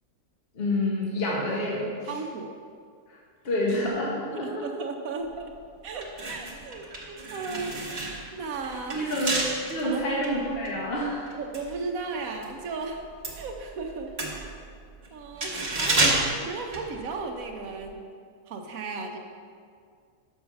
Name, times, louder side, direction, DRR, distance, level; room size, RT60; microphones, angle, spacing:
voice 1, 0.5-2.1 3.4-4.7 8.9-9.3 9.7-11.3, left 1 dB, 40° left, -4 dB, 1.3 m, -28 dB
voice 2, 2.0-2.6 4.3-5.5 5.8-7.8 8.3-9.1 9.8-10.0 11.4-13.1 13.3-14.1 14.4-14.6 15.1-16.0 16.4-18.0 18.5-19.2, right 4 dB, 65° right, 3 dB, 1.2 m, -35 dB
sound 1, 5.3-5.5 5.9-12.5 12.8-17.5 17.8-17.9, right 2 dB, 30° right, 1.2 m, -31 dB
6.7 x 5.6 x 5.8 m, 2.1 s
omnidirectional pair, 1.7 m